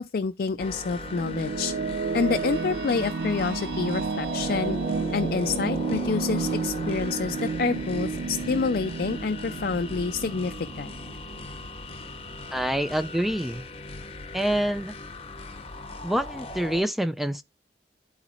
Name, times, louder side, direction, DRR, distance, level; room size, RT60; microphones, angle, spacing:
voice 1, 0.0-1.7 2.1-4.8 5.1-11.0, left 4 dB, 55° left, 0.4 m, -28 dB
sound 1, 0.6-16.8, left 2 dB, 35° left, 0.8 m, -38 dB
sound 2, 0.6-11.9, right 4 dB, 70° right, 0.4 m, -32 dB
voice 2, 12.5-13.6 14.3-14.9 16.0-17.4, right 1 dB, ahead, 0.4 m, -26 dB
11.5 x 4.0 x 4.3 m
head